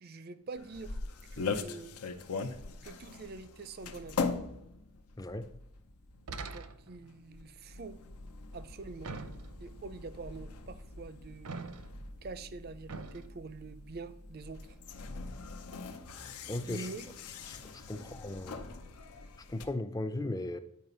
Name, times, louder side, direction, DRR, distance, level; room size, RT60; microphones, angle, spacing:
voice 1, 0.0-1.9 2.8-4.3 6.5-8.0 8.5-9.1 9.6-11.6 12.2-14.8 16.7-17.1 17.9-18.1, right 3 dB, 45° right, 0.5 m, -45 dB
sound 1, 0.6-19.7, left 4 dB, 90° left, 0.7 m, -42 dB
voice 2, 5.2-5.5 16.5-16.9 17.5-18.7 19.5-20.6, left 1 dB, 15° left, 0.4 m, -37 dB
sound 2, 6.3-7.1 9.0-9.8 11.5-12.1 12.9-13.3, right 3 dB, 80° right, 0.7 m, -43 dB
9.5 x 4.9 x 5.4 m
head